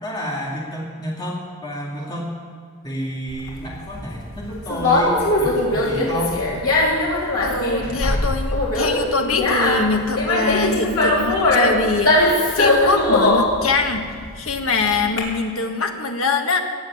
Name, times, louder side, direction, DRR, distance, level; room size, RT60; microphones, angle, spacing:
voice 1, 0.0-2.3 2.8-6.4, equal, 20° left, -4 dB, 2.3 m, -29 dB
Conversation, 3.3-15.2, left 1 dB, 85° left, 3.5 m, -20 dB
voice 2, 7.4-14.1 14.3-16.6, left 4 dB, 70° left, 4 dB, 1.5 m, -23 dB
17.5 x 7.7 x 8.5 m, 2.1 s
head